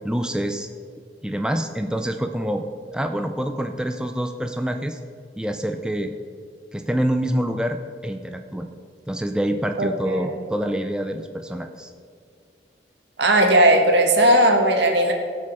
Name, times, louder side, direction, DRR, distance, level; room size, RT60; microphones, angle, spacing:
voice 1, 0.0-0.7 1.2-2.6 2.9-5.0 5.4-6.1 6.7-8.7 9.1-11.9, equal, 5° right, 5 dB, 0.4 m, -26 dB
voice 2, 9.8-10.4 13.2-15.1, right 1 dB, 80° right, 3 dB, 1.5 m, -17 dB
16.5 x 6.3 x 4.5 m, 2.2 s
head